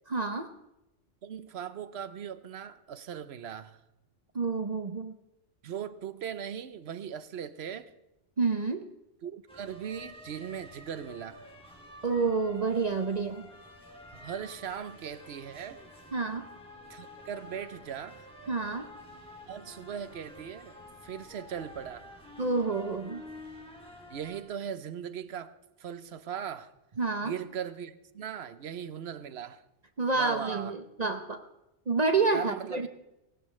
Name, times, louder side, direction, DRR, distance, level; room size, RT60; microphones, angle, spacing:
voice 1, 0.1-0.5 4.3-5.2 8.4-8.9 12.0-13.5 16.1-16.5 18.5-18.9 22.4-23.2 27.0-27.4 30.0-31.4 31.9-32.9, right 4 dB, 40° right, 0.8 m, -29 dB
voice 2, 1.2-3.8 5.6-7.9 9.2-11.4 14.1-15.8 16.9-18.3 19.5-22.1 24.1-26.7 27.2-29.6 30.1-30.8 32.3-32.9, right 8 dB, 65° right, 1.0 m, -39 dB
sound 1, 9.5-24.4, left 1 dB, 5° left, 2.4 m, -49 dB
19.5 x 17.5 x 3.2 m
omnidirectional pair, 1.2 m